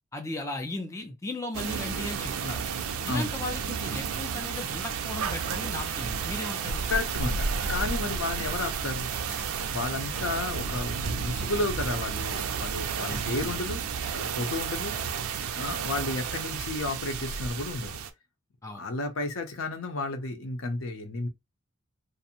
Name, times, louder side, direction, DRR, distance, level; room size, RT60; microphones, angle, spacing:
voice 1, 0.1-2.7 3.0-6.8 10.1-10.3 13.1-13.6 16.0-16.2 18.6-18.8, left 2 dB, 15° left, 0.3 m, -37 dB
sound 1, 1.5-18.1, right 6 dB, 90° right, 0.4 m, -32 dB
voice 2, 6.9-9.4 9.7-13.8 14.1-15.0 15.5-18.0 18.7-21.3, left 2 dB, 70° left, 0.6 m, -32 dB
2.5 x 2.1 x 2.8 m
head